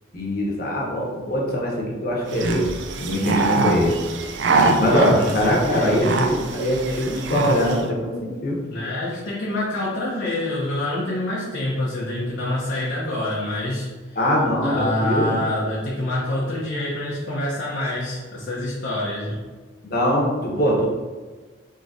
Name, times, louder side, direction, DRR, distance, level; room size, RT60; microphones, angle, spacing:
voice 1, 0.1-4.0 4.8-8.6 14.2-15.4 19.8-20.9, equal, 50° left, -2 dB, 1.1 m, -22 dB
sound 1, 2.3-7.8, right 3 dB, 75° right, 0.5 m, -24 dB
voice 2, 4.7-6.0 8.7-14.2 14.6-19.4, left 1 dB, 75° left, -7 dB, 1.0 m, -26 dB
6.2 x 3.1 x 2.7 m, 1.4 s
head